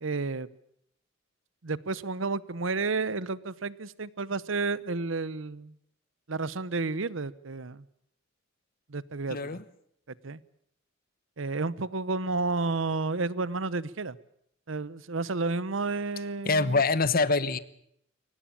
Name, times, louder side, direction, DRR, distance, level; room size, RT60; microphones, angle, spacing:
voice 1, 0.0-0.5 1.6-5.7 6.3-7.8 8.9-9.6 10.2-10.4 11.4-14.2 14.7-16.8, right 3 dB, 75° right, 19 dB, 0.9 m, -31 dB
voice 2, 9.3-9.6 16.4-17.6, left 3 dB, 50° left, 16 dB, 1.1 m, -25 dB
23.0 x 19.0 x 8.7 m, 0.72 s
head